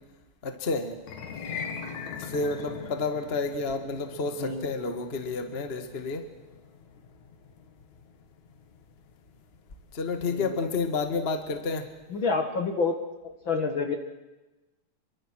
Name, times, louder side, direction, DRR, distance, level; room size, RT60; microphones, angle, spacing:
voice 1, 0.4-1.0 2.2-6.3 9.9-11.9, left 3 dB, 25° left, 7 dB, 1.5 m, -30 dB
sound 1, 1.0-11.3, left 6 dB, 75° left, 3.1 m, -42 dB
voice 2, 12.1-13.0 13.5-14.0, left 4 dB, 50° left, 6 dB, 2.0 m, -28 dB
27.0 x 23.5 x 6.4 m, 1.1 s
omnidirectional pair, 3.4 m